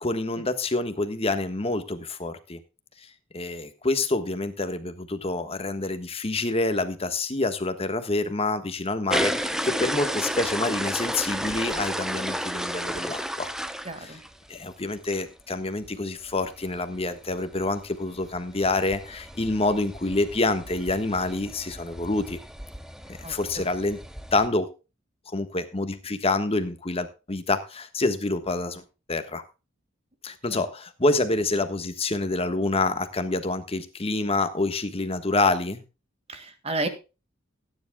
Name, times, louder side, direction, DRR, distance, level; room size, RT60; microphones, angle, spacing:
voice 1, 0.0-2.6 3.3-13.5 14.0-14.2 14.5-22.4 23.1-24.0 24.3-24.7 25.3-28.8 29.1-29.4 30.2-35.8, left 2 dB, 30° left, 9 dB, 1.4 m, -27 dB
sound 1, 9.1-14.6 15.0-15.2 15.6-15.7 15.8-15.9 16.2-24.5, equal, 5° right, 0.8 m, -33 dB
voice 2, 13.9-14.2 23.2-23.3 30.5-30.6 36.3-36.9, right 2 dB, 30° right, 9 dB, 1.9 m, -31 dB
17.5 x 10.0 x 2.3 m, 0.30 s
head